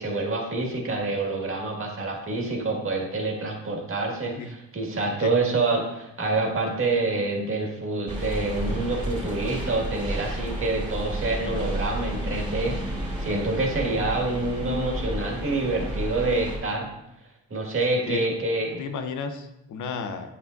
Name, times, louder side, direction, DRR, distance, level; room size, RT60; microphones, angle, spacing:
voice 1, 0.0-16.9 17.5-18.8, right 2 dB, 45° right, -1 dB, 1.9 m, -27 dB
sound 1, 8.1-16.6, right 1 dB, 15° right, 2.5 m, -32 dB
voice 2, 18.8-20.4, left 5 dB, 85° left, 7 dB, 0.8 m, -33 dB
9.4 x 5.5 x 2.6 m, 0.87 s
cardioid pair, 80°, 29 cm